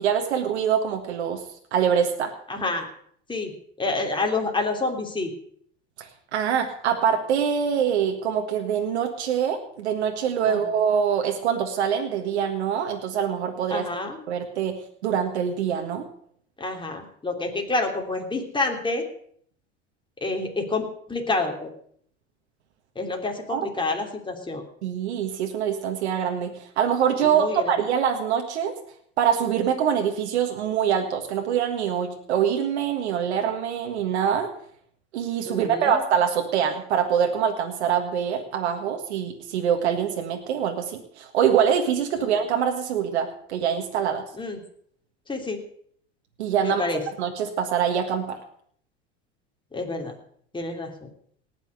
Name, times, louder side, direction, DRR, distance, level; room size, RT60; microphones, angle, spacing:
voice 1, 0.0-1.4 1.7-2.3 6.0-13.9 14.3-14.7 15.0-16.1 23.5-23.7 24.8-28.7 29.2-34.5 35.1-44.2 46.4-46.8 47.2-48.4, right 8 dB, 85° right, 4 dB, 1.7 m, -24 dB
voice 2, 2.5-2.9 3.3-3.5 3.8-5.3 10.5-10.7 13.7-14.2 16.6-19.0 20.2-21.7 22.9-24.6 27.2-27.7 35.4-36.0 42.2-42.3 44.4-44.6 45.3-45.6 46.6-47.0 49.7-50.1 50.5-51.1, left 3 dB, 15° left, 2 dB, 3.3 m, -28 dB
18.5 x 6.3 x 7.8 m, 0.62 s
hypercardioid pair, 90°, 32 cm